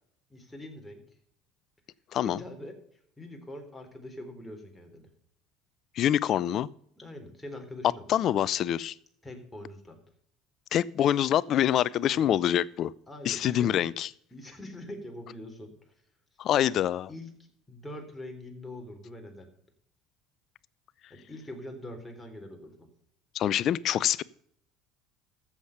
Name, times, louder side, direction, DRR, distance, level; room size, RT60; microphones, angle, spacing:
voice 1, 0.3-1.0 2.2-2.8 3.2-5.1 7.0-8.1 9.2-10.0 12.0-12.4 13.1-13.9 14.3-15.7 17.1-17.3 17.7-19.5 21.1-22.9, left 1 dB, 10° left, 3.7 m, -43 dB
voice 2, 6.0-6.7 8.1-8.9 10.7-12.9 13.2-14.1 16.4-17.1 23.3-24.2, left 11 dB, 55° left, 0.5 m, -25 dB
14.5 x 7.4 x 5.6 m
hypercardioid pair, 70°, 0 cm